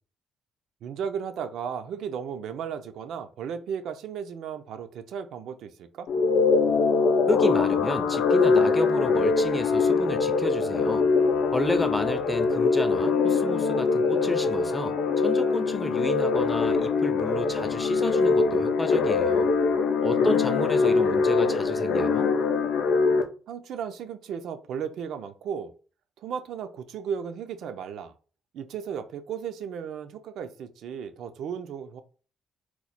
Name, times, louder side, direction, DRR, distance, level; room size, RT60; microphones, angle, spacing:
voice 1, 0.8-6.1 20.2-20.3 20.8-21.1 23.5-25.7 26.2-28.1 28.5-32.0, right 7 dB, 70° right, 0.3 m, -35 dB
sound 1, 6.1-23.2, left 4 dB, 75° left, 0.5 m, -23 dB
voice 2, 7.3-11.1 11.5-19.5 20.0-22.3, left 1 dB, 10° left, 0.4 m, -31 dB
3.0 x 2.1 x 4.0 m
cardioid pair, 130°, 0 cm